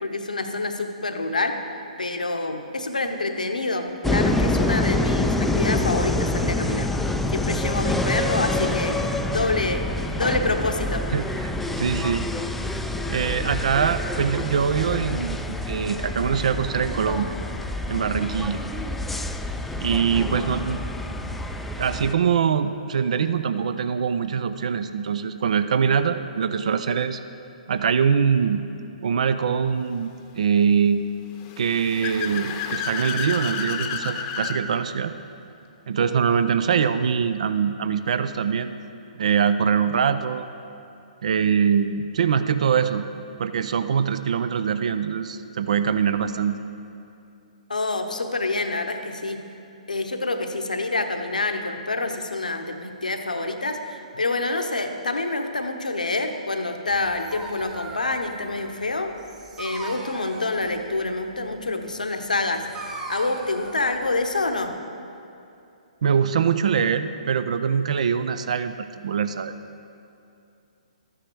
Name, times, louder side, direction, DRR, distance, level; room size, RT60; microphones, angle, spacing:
voice 1, 0.0-1.6 2.0-6.9 7.3-9.8 10.1-11.0 47.7-49.4 49.9-59.1 59.6-64.7, left 2 dB, 85° left, 5 dB, 1.1 m, -27 dB
sound 1, 4.0-22.1, left 1 dB, 5° left, 0.4 m, -27 dB
voice 2, 11.1-12.3 13.1-17.3 17.9-18.6 19.8-20.8 21.8-27.2 27.7-28.6 29.0-30.1 30.4-31.0 31.6-35.1 35.9-38.7 39.2-40.5 41.2-43.0 43.4-46.6 66.0-69.5, right 7 dB, 60° right, 11 dB, 0.5 m, -23 dB
Car / Accelerating revving vroom, 31.4-34.6, left 7 dB, 30° left, 0.8 m, -30 dB
Dog, 56.9-64.8, right 2 dB, 15° right, 1.2 m, -40 dB
13.0 x 9.7 x 4.6 m, 2.6 s
figure-of-eight pair, 130°, 4 cm